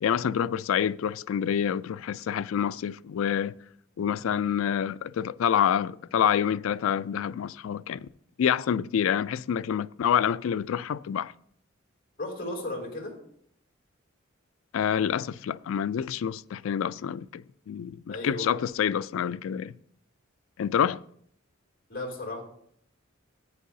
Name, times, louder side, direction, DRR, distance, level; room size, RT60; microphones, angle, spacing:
voice 1, 0.0-3.5 4.0-8.1 8.4-11.3 14.7-19.7 20.6-21.0, left 8 dB, 80° left, 0.3 m, -27 dB
voice 2, 12.2-13.2 18.1-18.6 21.9-22.4, left 2 dB, 50° left, 3.0 m, -35 dB
14.5 x 9.3 x 2.7 m
head